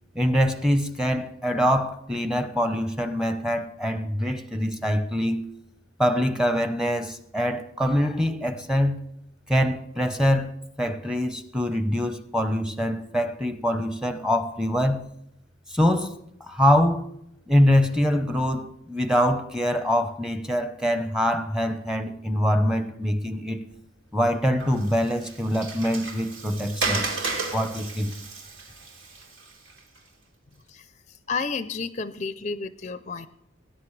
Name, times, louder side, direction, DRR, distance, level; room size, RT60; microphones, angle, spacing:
voice 1, 0.1-5.4 6.0-9.0 9.5-15.0 15.7-17.1 17.5-23.6 24.1-28.1, equal, 5° right, 0.9 m, -24 dB
Water, 24.6-30.0, right 3 dB, 80° right, 2.9 m, -33 dB
voice 2, 31.3-33.3, left 4 dB, 35° left, 0.5 m, -31 dB
19.0 x 10.5 x 3.3 m
head